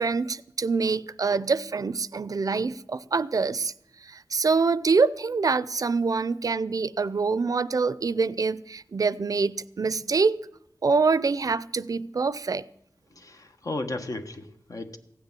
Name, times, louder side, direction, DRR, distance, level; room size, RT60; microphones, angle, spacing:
voice 1, 0.0-3.7 4.0-10.4 10.8-12.6, right 4 dB, 60° right, 0.5 m, -25 dB
voice 2, 13.1-15.0, left 2 dB, 55° left, 1.4 m, -34 dB
15.5 x 6.8 x 9.6 m
wide cardioid pair, 60°, 7 cm